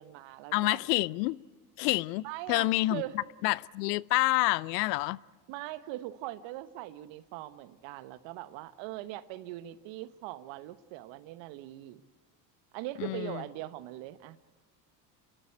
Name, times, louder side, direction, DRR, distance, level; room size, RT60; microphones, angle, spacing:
voice 1, 0.0-0.8 2.2-3.2 5.5-12.0 12.7-14.4, right 15 dB, 60° right, 1.2 m, -41 dB
voice 2, 0.5-1.4 1.8-3.0 3.4-5.2 13.0-13.4, left 19 dB, 75° left, 0.6 m, -28 dB
29.5 x 12.5 x 9.3 m
hypercardioid pair, 75°, 49 cm